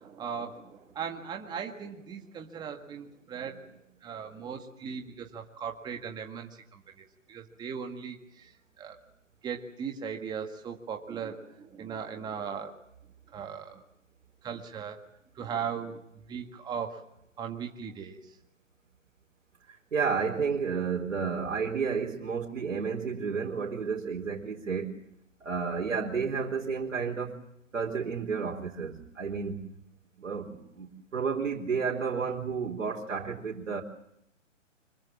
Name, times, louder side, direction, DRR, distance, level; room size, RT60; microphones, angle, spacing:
voice 1, 0.0-3.7 4.0-9.0 9.4-12.7 13.3-13.8 14.4-15.0 15.3-16.0 16.3-17.0 17.4-18.4, right 7 dB, 10° right, 3 dB, 1.9 m, -38 dB
voice 2, 19.7-24.9 25.4-27.4 27.7-29.6 30.2-33.8, right 5 dB, 70° right, -1 dB, 4.0 m, -31 dB
25.5 x 22.5 x 7.4 m, 0.78 s
figure-of-eight pair, 140°, 39 cm